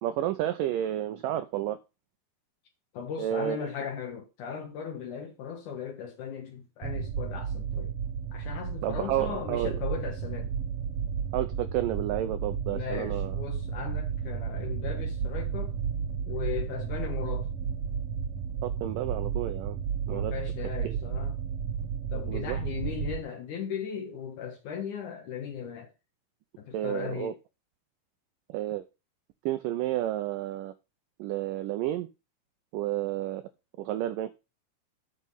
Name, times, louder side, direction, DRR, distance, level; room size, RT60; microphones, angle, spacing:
voice 1, 0.0-1.8 3.2-3.7 8.8-9.7 11.3-13.4 18.6-19.8 20.1-20.3 20.8-20.9 22.3-22.6 26.7-27.3 28.5-28.9 29.5-30.7 31.2-32.1 32.7-33.4 33.8-34.3, right 13 dB, 90° right, 1.9 m, -31 dB
voice 2, 2.9-7.9 8.3-10.5 12.7-15.7 16.2-17.5 20.1-21.4 22.1-25.9 26.6-27.4, left 7 dB, 70° left, 2.1 m, -37 dB
sound 1, 6.8-23.2, right 7 dB, 70° right, 1.4 m, -33 dB
8.2 x 6.3 x 5.5 m
omnidirectional pair, 4.6 m